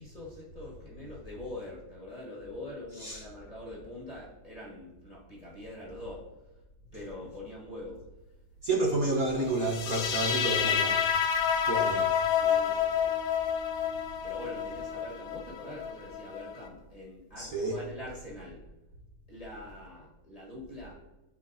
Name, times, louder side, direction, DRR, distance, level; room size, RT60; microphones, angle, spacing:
voice 1, 0.0-6.3 6.9-8.0 8.8-9.0 12.3-13.5 14.2-18.6 19.3-20.9, left 2 dB, 20° left, -6 dB, 1.7 m, -44 dB
voice 2, 8.6-11.0 11.6-12.1 17.4-17.8, right 2 dB, 50° right, -2 dB, 1.4 m, -30 dB
sound 1, 9.6-16.7, left 8 dB, 85° left, 1.6 m, -29 dB
13.5 x 5.0 x 2.7 m, 1.0 s
omnidirectional pair, 2.2 m